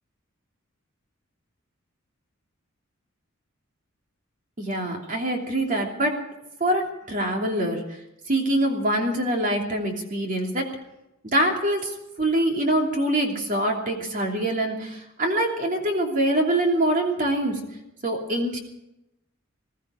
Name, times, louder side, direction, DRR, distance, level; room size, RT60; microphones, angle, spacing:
voice 1, 4.6-6.2 6.6-7.8 8.3-10.7 11.3-17.6 18.0-18.6, right 1 dB, 40° right, 1 dB, 3.0 m, -24 dB
20.5 x 14.0 x 5.1 m, 0.87 s
head